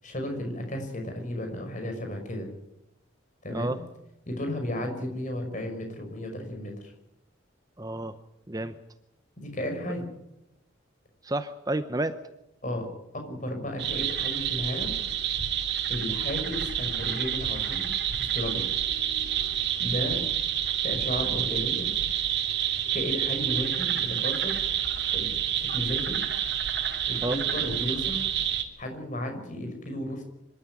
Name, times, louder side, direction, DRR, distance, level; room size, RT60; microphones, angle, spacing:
voice 1, 0.0-2.5 3.4-3.8 4.3-6.9 9.4-10.1 12.6-12.9 13.1-15.0 15.9-18.7 19.8-20.2 20.8-21.9 22.9-24.6 25.1-26.2 27.1-28.2 28.8-30.2, left 1 dB, 40° left, 4 dB, 5.8 m, -34 dB
voice 2, 7.8-8.2 8.5-8.7 11.2-12.2 27.2-27.4, right 1 dB, 20° right, 11 dB, 0.7 m, -30 dB
sound 1, 13.8-28.6, right 9 dB, 55° right, 2.8 m, -28 dB
26.0 x 13.0 x 9.8 m, 0.87 s
head